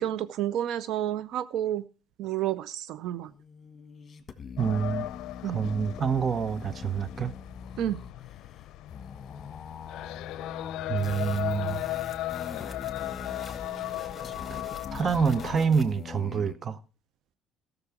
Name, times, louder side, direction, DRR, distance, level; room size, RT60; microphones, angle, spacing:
voice 1, 0.0-1.8 2.2-3.3 5.4-5.6 7.8-8.0, right 11 dB, 75° right, 0.5 m, -30 dB
sound 1, 3.3-16.5, left 6 dB, 35° left, 1.4 m, -43 dB
sound 2, 4.6-15.6, left 16 dB, 75° left, 0.5 m, -37 dB
voice 2, 4.6-5.1 5.4-7.3 10.9-11.8 14.5-14.6 14.9-16.8, right 6 dB, 35° right, 0.8 m, -27 dB
sound 3, 11.0-16.0, left 3 dB, 15° left, 2.6 m, -45 dB
13.5 x 6.8 x 5.8 m
cardioid pair, 105°, 0 cm